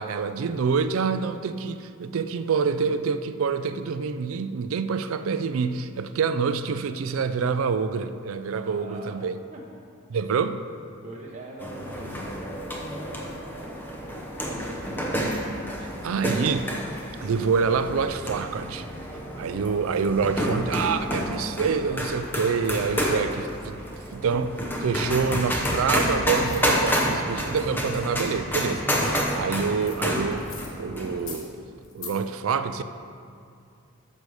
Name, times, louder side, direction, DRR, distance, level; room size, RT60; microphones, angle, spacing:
voice 1, 0.0-9.3 10.1-10.6 15.8-16.7 17.2-18.9 19.4-23.8 24.1-24.5 24.8-31.5 31.9-32.8, right 5 dB, 75° right, 12 dB, 0.4 m, -26 dB
voice 2, 8.6-9.2 9.5-9.6 11.0-13.8 14.4-14.9, right 1 dB, 35° right, -4 dB, 0.8 m, -43 dB
sound 1, 11.6-31.4, equal, 10° left, 0.7 m, -29 dB
sound 2, 25.9-26.0 26.4-26.6 29.9-30.0 30.4-30.7 31.1-31.4 31.8-32.1, left 6 dB, 70° left, 1.2 m, -40 dB
8.2 x 6.6 x 4.8 m, 2.4 s
head